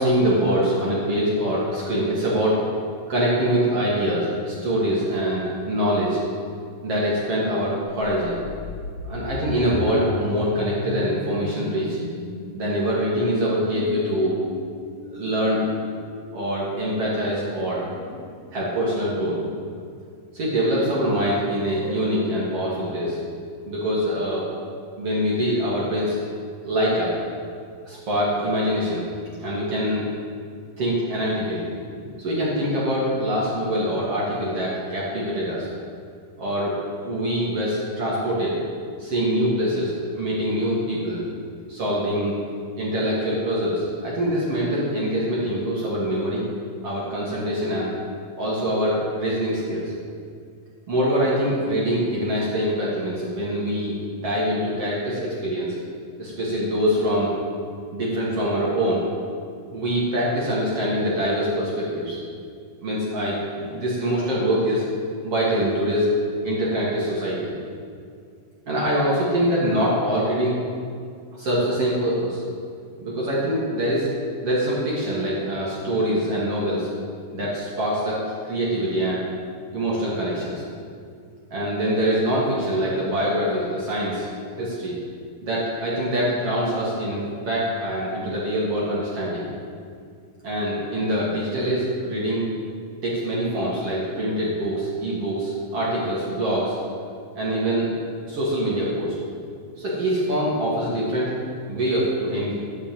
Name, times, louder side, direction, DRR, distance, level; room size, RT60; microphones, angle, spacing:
voice 1, 0.0-2.6 3.1-6.2 6.8-8.4 9.0-12.0 12.6-14.4 15.1-15.6 16.3-19.5 20.3-23.2 23.6-24.4 25.0-26.2 26.7-27.1 27.9-29.1 29.4-30.1 30.8-31.7 31.9-35.7 36.4-36.8 37.0-38.6 39.0-41.3 41.7-42.3 42.8-46.5 46.8-47.9 48.4-49.9 50.9-55.7 56.2-57.3 57.9-59.0 59.7-62.2 62.8-64.8 65.2-66.1 66.4-67.5 68.7-70.6 71.3-72.4 73.0-74.1 74.4-76.9 77.3-79.2 79.7-80.6 81.5-84.3 84.5-85.0 85.4-89.5 90.4-92.4 93.0-96.8 97.4-97.9 98.2-99.1 99.8-101.3 101.7-102.5, equal, 45° right, -6 dB, 2.7 m, -24 dB
sound 1, 8.0-17.8, left 4 dB, 80° left, 1.6 m, -36 dB
12.0 x 6.9 x 7.8 m, 2.3 s
omnidirectional pair, 4.2 m